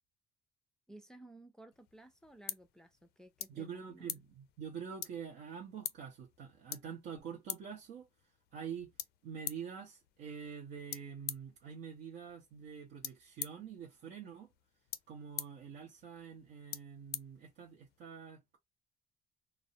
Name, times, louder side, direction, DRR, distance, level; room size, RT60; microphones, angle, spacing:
voice 1, 0.9-4.1, right 1 dB, 5° left, 0.4 m, -56 dB
sound 1, 1.7-18.0, left 12 dB, 75° left, 0.4 m, -48 dB
voice 2, 3.5-8.1 8.5-8.9 9.2-14.5 15.1-18.6, right 7 dB, 80° right, 0.7 m, -46 dB
2.3 x 2.0 x 2.7 m
cardioid pair, 110°, 17 cm